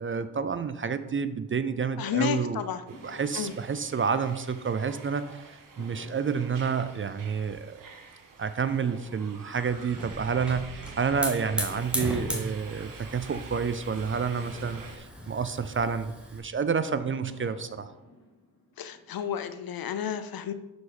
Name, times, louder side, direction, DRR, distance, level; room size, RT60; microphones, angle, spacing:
voice 1, 0.0-2.6 3.0-7.8 8.4-17.9, right 6 dB, 35° right, 12 dB, 0.4 m, -29 dB
sound 1, 0.5-2.3 2.9-5.2 5.8-8.0 8.6-10.9 11.5-13.8 14.4-16.6 17.2-19.5, left 1 dB, 35° left, 2.3 m, -53 dB
voice 2, 2.0-2.8 3.3-3.5 18.8-20.5, left 8 dB, 65° left, 11 dB, 0.6 m, -31 dB
sound 2, 2.9-15.0, right 4 dB, 55° right, 0.9 m, -48 dB
Hiss / Fire, 9.5-16.4, equal, 5° right, 1.5 m, -37 dB
6.2 x 4.7 x 4.1 m, 1.0 s
cardioid pair, 60°, 39 cm